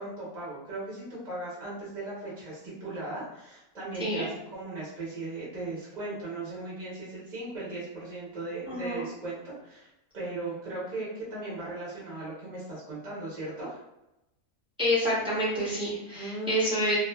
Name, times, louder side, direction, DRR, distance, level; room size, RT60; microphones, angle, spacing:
voice 1, 0.0-9.9 10.1-13.8 16.1-16.8, right 2 dB, 40° right, -8 dB, 0.7 m, -37 dB
voice 2, 8.7-9.1 14.8-17.0, equal, 10° right, -8 dB, 0.4 m, -28 dB
2.4 x 2.3 x 2.2 m, 0.90 s
omnidirectional pair, 1.7 m